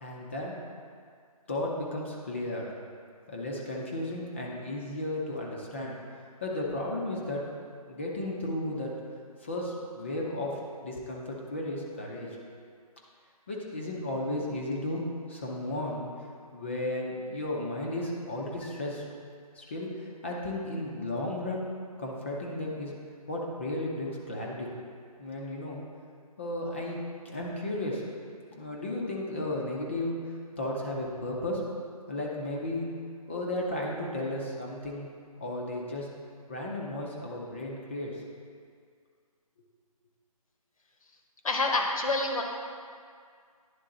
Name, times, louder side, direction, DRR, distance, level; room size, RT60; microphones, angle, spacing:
voice 1, 0.0-0.5 1.5-2.7 3.3-5.9 6.4-7.5 7.9-8.9 9.4-12.4 13.5-16.1 16.5-19.1 19.6-21.7 22.0-22.9 23.3-24.7 25.2-25.8 26.4-27.0 27.2-28.0 28.5-30.2 30.6-31.6 32.1-32.9 33.3-35.1 35.4-36.1 36.5-38.2, left 1 dB, 20° left, -3 dB, 0.6 m, -34 dB
voice 2, 41.4-42.4, left 2 dB, 65° left, 2 dB, 1.1 m, -27 dB
10.5 x 3.7 x 3.8 m, 2.1 s
hypercardioid pair, 170°, 19 cm